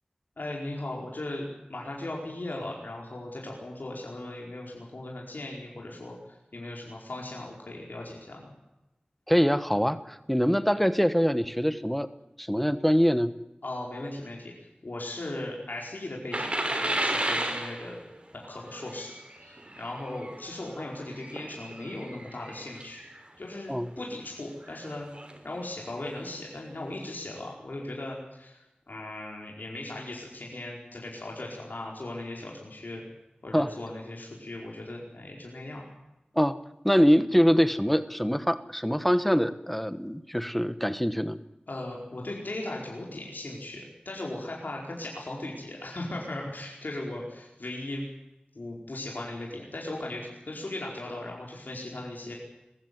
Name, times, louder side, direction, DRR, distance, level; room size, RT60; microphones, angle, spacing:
voice 1, 0.4-8.5 13.6-14.5 14.8-18.0 18.3-19.1 19.4-23.0 23.4-25.1 25.4-28.6 28.9-33.0 33.4-35.8 41.7-48.0 48.5-52.3, left 1 dB, 75° left, -2 dB, 4.8 m, -38 dB
voice 2, 9.3-12.1 12.4-13.3 23.7-23.9 33.5-33.7 36.3-36.6 36.8-41.4, equal, 5° left, 13 dB, 1.2 m, -24 dB
sound 1, 16.3-23.2 23.8-24.0 24.6-25.4 26.2-26.3 26.8-26.9, right 1 dB, 35° right, 3.5 m, -34 dB
22.0 x 15.5 x 9.4 m, 0.94 s
wide cardioid pair, 55°, 3 cm